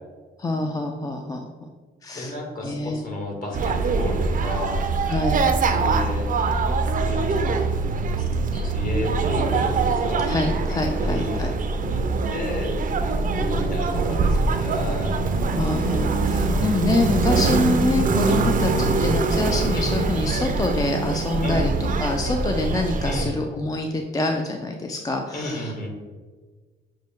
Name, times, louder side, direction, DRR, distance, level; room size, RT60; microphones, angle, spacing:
voice 1, 0.4-1.7 2.0-2.3 2.6-3.0 5.0-5.4 10.3-11.5 15.6-25.9, left 2 dB, 20° left, 2 dB, 0.3 m, -26 dB
voice 2, 2.1-4.9 5.7-6.3 7.0-7.6 8.5-10.2 11.0-11.4 11.8-12.0 12.3-13.1 13.4-15.2 16.5-16.9 19.8-20.0 21.4-21.7 23.0-23.4 25.3-25.9, left 1 dB, 45° left, 0 dB, 1.4 m, -32 dB
sound 1, 3.5-23.2, right 3 dB, 45° right, 0.4 m, -23 dB
6.3 x 2.2 x 3.5 m, 1.4 s
cardioid pair, 90°, 20 cm